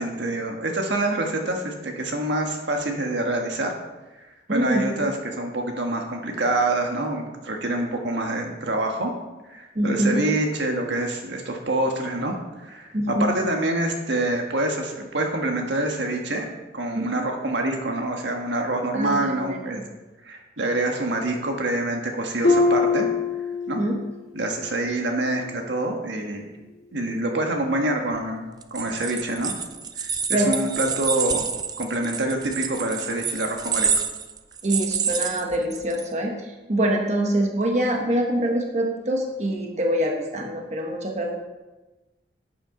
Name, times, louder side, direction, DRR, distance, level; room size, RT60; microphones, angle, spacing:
voice 1, 0.0-3.7 4.5-9.1 9.5-16.5 16.7-19.8 20.2-23.1 23.7-23.8 24.3-26.5 26.9-29.5 30.0-31.5 31.8-33.9, right 1 dB, 80° right, 2 dB, 1.5 m, -26 dB
voice 2, 4.5-5.0 9.7-10.2 12.9-13.3 16.9-17.3 18.9-19.8 23.8-24.0 30.3-30.5 34.6-41.3, right 1 dB, 40° right, 1 dB, 1.2 m, -25 dB
Harp, 22.4-24.2 24.6-25.0 25.5-25.6, left 4 dB, 60° left, 2.1 m, -23 dB
sound 1, 28.6-36.0, right 6 dB, 20° right, 0.4 m, -28 dB
11.0 x 8.6 x 3.8 m, 1.1 s
head